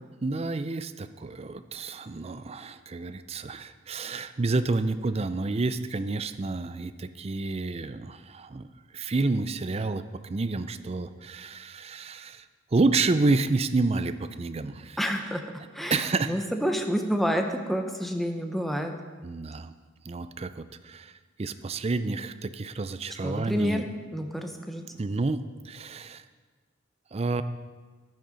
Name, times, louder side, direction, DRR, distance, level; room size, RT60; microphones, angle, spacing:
voice 1, 0.2-8.7 8.9-12.4 12.7-15.0 15.9-16.5 19.2-19.7 20.0-21.1 21.4-23.8 24.9-26.2 27.1-27.4, right 3 dB, 30° right, 11 dB, 0.5 m, -29 dB
voice 2, 15.0-15.4 15.7-18.9 23.2-23.9 24.1-24.8, equal, ahead, 4 dB, 0.8 m, -29 dB
11.5 x 9.3 x 5.1 m, 1.4 s
head